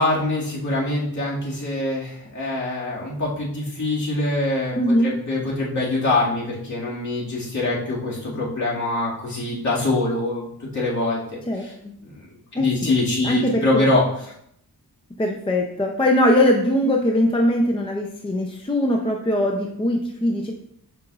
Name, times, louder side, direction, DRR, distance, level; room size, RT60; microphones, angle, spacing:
voice 1, 0.0-4.7 5.0-11.7 12.0-14.0, left 2 dB, 50° left, -6 dB, 2.1 m, -24 dB
voice 2, 4.8-5.1 11.5-11.9 12.5-12.9 13.2-13.9 15.2-20.5, left 1 dB, 15° left, 1 dB, 0.5 m, -21 dB
7.6 x 5.2 x 2.4 m, 0.71 s
wide cardioid pair, 150°, 37 cm